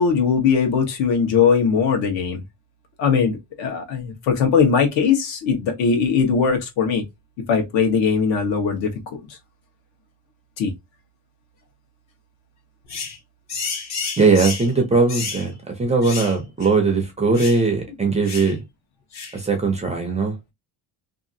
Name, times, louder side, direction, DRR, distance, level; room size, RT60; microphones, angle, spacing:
voice 1, 0.0-2.4 3.0-7.0 7.5-8.9 10.6-10.7, left 6 dB, 70° left, 1.1 m, -20 dB
sound 1, 12.9-13.2 13.5-14.7 15.1-15.5 16.0-16.4 16.6-16.7 17.3-17.6 18.2-18.5 19.1-19.4, left 5 dB, 35° left, 0.6 m, -30 dB
voice 2, 14.2-15.5 15.8-18.6 19.3-20.3, right 4 dB, 15° right, 0.4 m, -19 dB
2.8 x 2.5 x 2.6 m
cardioid pair, 155°, 47 cm